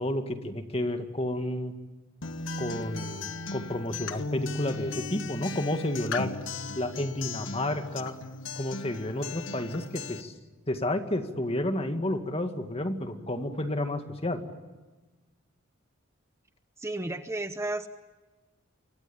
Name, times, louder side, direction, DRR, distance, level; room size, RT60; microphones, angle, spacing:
voice 1, 0.0-1.7 2.6-6.3 6.8-8.1 8.6-10.3 10.7-14.4, left 1 dB, 30° left, 6 dB, 2.1 m, -31 dB
Acoustic guitar, 2.2-10.2, left 3 dB, 65° left, 1.2 m, -37 dB
voice 2, 16.8-17.9, right 2 dB, 15° right, 9 dB, 0.9 m, -32 dB
28.5 x 24.5 x 7.2 m, 1.2 s
head